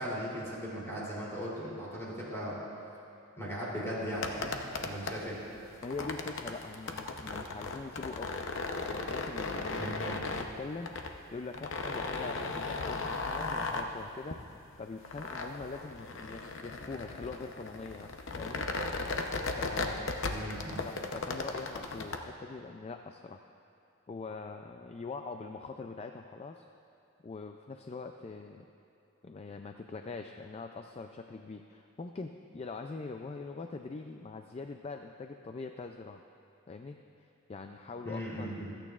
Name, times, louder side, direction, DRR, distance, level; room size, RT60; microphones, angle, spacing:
voice 1, 0.0-2.6 3.4-5.4 9.8-10.2 20.3-20.8 38.0-38.7, equal, 15° left, -7 dB, 3.1 m, -38 dB
sound 1, 4.1-22.2, left 3 dB, 65° left, 0.8 m, -37 dB
voice 2, 5.8-8.4 8.8-10.1 10.4-14.4 14.8-18.7 19.6-20.1 20.8-23.4 24.1-26.6 27.2-28.7 29.2-36.2 36.7-38.8, left 4 dB, 30° left, 5 dB, 0.3 m, -43 dB
26.5 x 9.1 x 2.4 m, 2.8 s
head